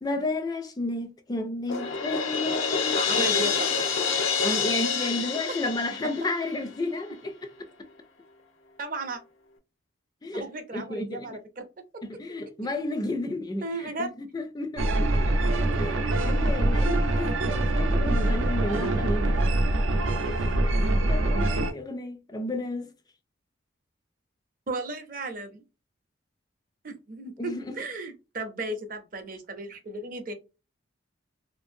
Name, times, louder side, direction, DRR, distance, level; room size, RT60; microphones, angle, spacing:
voice 1, 0.0-3.0 3.4-3.6 4.4-7.5 10.2-10.5 10.7-11.4 12.0-19.5 20.2-20.5 21.0-22.9 27.4-27.8, left 2 dB, 20° left, 0.3 m, -32 dB
Crash cymbal, 1.7-6.6, left 5 dB, 85° left, 0.6 m, -27 dB
voice 2, 2.8-3.9 5.0-5.2 8.8-9.2 10.3-11.7 11.9-12.0 13.6-14.2 15.7-15.8 24.7-25.6 26.8-30.3, right 2 dB, 45° right, 0.6 m, -35 dB
sound 1, 14.8-21.7, right 1 dB, 85° right, 0.6 m, -24 dB
2.6 x 2.5 x 2.5 m
head